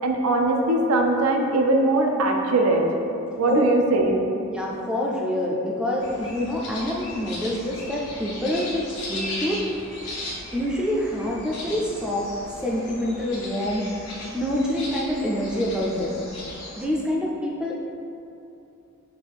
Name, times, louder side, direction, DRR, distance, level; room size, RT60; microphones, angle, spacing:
voice 1, 0.0-2.9 3.4-4.2, right 2 dB, 80° right, 2 dB, 0.5 m, -21 dB
voice 2, 4.5-9.6 10.5-16.2 16.8-17.7, left 1 dB, 5° right, -4 dB, 0.3 m, -26 dB
sound 1, 6.0-16.8, left 1 dB, 85° left, 1.2 m, -37 dB
5.8 x 2.4 x 3.4 m, 2.7 s
head